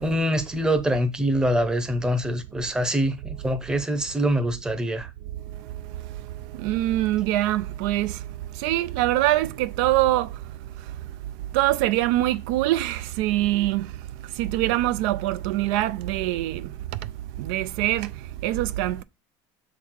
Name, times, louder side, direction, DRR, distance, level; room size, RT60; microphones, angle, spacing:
voice 1, 0.0-5.1, equal, 5° right, 0.7 m, -24 dB
voice 2, 6.6-8.2 8.6-10.3 11.5-13.9 14.4-16.7 17.4-18.1 18.4-19.0, right 15 dB, 70° right, 0.4 m, -23 dB
7.0 x 3.9 x 4.6 m
cardioid pair, 160°, 11 cm